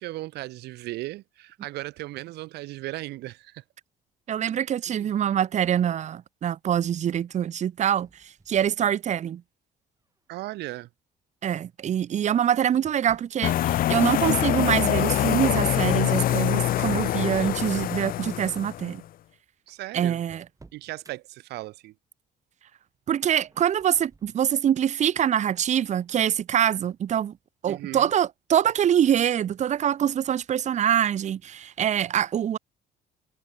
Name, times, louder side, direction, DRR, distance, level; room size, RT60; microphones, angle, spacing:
voice 1, 0.0-3.6 4.9-5.1 10.3-10.9 19.7-20.2 20.7-21.9 27.7-28.1, right 18 dB, 80° right, 0.8 m, -37 dB
voice 2, 4.3-9.4 11.4-19.0 19.9-20.4 23.1-27.3 27.6-32.6, right 9 dB, 45° right, 0.9 m, -24 dB
sound 1, 7.9-9.3 10.0-10.4 11.5-13.5 15.9-17.5 18.0-18.2 19.0-19.1 19.2-19.3 19.7-21.2 23.3-24.6, right 3 dB, 20° right, 7.0 m, -57 dB
sound 2, 13.4-18.9, left 13 dB, 60° left, 0.7 m, -24 dB
cardioid pair, 110°, 17 cm